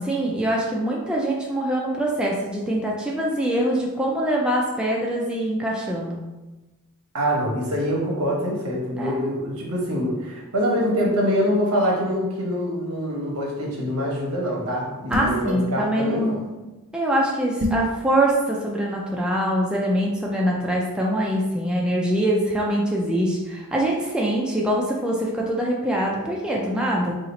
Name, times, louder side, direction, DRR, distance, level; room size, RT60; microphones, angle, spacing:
voice 1, 0.0-6.2 9.0-9.2 15.1-16.4 16.9-27.1, right 1 dB, 5° right, -3 dB, 0.3 m, -24 dB
voice 2, 7.1-16.4, equal, 85° right, -3 dB, 1.0 m, -24 dB
sound 1, 15.1-15.5 17.6-17.9, right 1 dB, 55° right, 0.7 m, -25 dB
2.7 x 2.4 x 3.9 m, 1.1 s
head